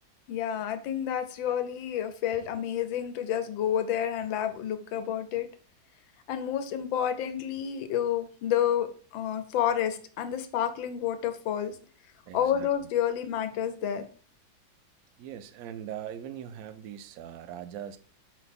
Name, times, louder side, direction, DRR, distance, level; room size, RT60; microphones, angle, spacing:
voice 1, 0.3-5.5 6.3-11.8 12.3-14.1, left 9 dB, 85° left, 1.5 m, -29 dB
voice 2, 12.3-12.9 15.2-18.0, right 9 dB, 70° right, 0.8 m, -41 dB
4.8 x 3.9 x 5.2 m
omnidirectional pair, 2.0 m